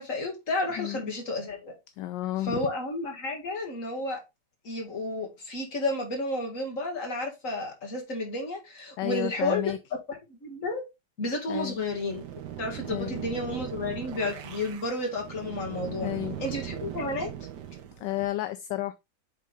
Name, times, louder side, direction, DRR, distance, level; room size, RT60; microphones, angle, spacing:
voice 1, 0.0-1.7 2.4-4.2 4.6-9.7 10.1-10.8 11.2-12.2 12.6-16.1 16.4-17.3, left 2 dB, 45° left, 2.4 m, -31 dB
voice 2, 2.0-2.6 9.0-9.8 11.5-11.8 12.9-13.2 16.0-16.4 18.0-18.9, left 15 dB, 80° left, 1.2 m, -32 dB
sound 1, 11.5-18.3, right 10 dB, 70° right, 1.4 m, -39 dB
8.4 x 3.7 x 3.5 m
omnidirectional pair, 2.0 m